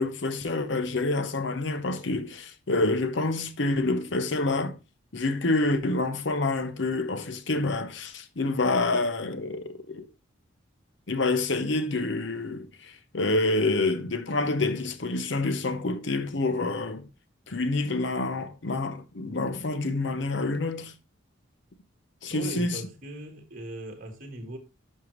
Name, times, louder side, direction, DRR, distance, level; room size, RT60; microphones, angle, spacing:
voice 1, 0.0-4.8 5.1-10.1 11.1-17.1 17.5-20.9 22.2-22.8, left 2 dB, 60° left, 0.8 m, -27 dB
voice 2, 22.3-24.6, right 1 dB, 40° right, 1.4 m, -39 dB
11.0 x 5.5 x 3.1 m
head